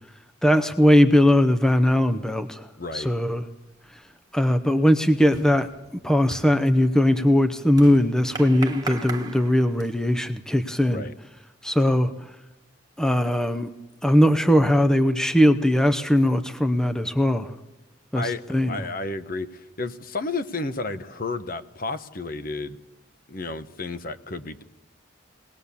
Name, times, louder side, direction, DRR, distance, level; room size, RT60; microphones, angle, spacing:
voice 1, 0.4-2.7 2.9-3.4 4.3-5.7 6.0-11.0 11.6-12.1 13.0-13.7 14.0-17.5 18.1-18.2 18.5-18.7, left 1 dB, 5° left, 7 dB, 0.7 m, -19 dB
voice 2, 2.8-3.1 10.8-11.1 18.1-22.8 23.3-24.6, left 3 dB, 45° left, 10 dB, 1.0 m, -32 dB
sound 1, 3.7-4.1 4.4-10.2, right 3 dB, 20° right, 1.4 m, -40 dB
23.0 x 19.0 x 7.0 m, 0.97 s
head